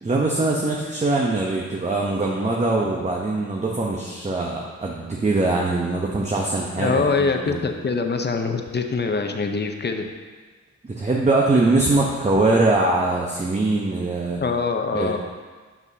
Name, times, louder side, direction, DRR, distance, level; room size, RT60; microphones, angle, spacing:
voice 1, 0.0-7.7 10.8-14.4 14.9-15.2, right 2 dB, 25° right, -2 dB, 0.8 m, -22 dB
voice 2, 6.8-10.1 14.4-15.2, left 4 dB, 35° left, 5 dB, 0.6 m, -24 dB
7.1 x 6.1 x 2.7 m, 1.4 s
cardioid pair, 65°, 30 cm